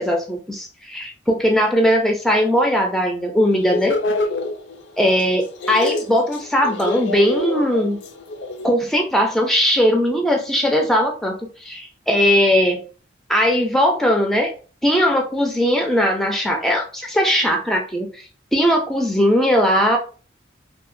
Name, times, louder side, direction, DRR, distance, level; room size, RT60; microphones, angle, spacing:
voice 1, 0.0-3.9 5.0-8.0 8.6-11.3 11.6-12.8 13.3-14.5 14.8-18.2 18.5-20.0, equal, ahead, 1 dB, 0.3 m, -19 dB
sound 1, 3.6-5.2 5.5-8.7, left 2 dB, 70° left, 0.4 m, -26 dB
2.7 x 2.2 x 2.5 m, 0.37 s
head